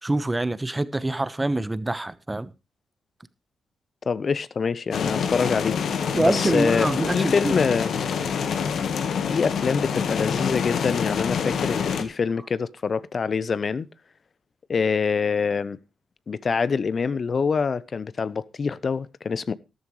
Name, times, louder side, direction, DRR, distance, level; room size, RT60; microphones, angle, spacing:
voice 1, 0.0-2.5 6.1-7.5, right 2 dB, 20° right, 1.1 m, -25 dB
voice 2, 4.1-5.8 6.2-6.9 7.1-7.9 9.3-13.9 14.7-15.8 16.3-19.5, left 5 dB, 50° left, 0.8 m, -25 dB
sound 1, 4.9-12.0, left 6 dB, 70° left, 1.5 m, -26 dB
13.5 x 12.5 x 3.2 m
supercardioid pair, 45°, 0 cm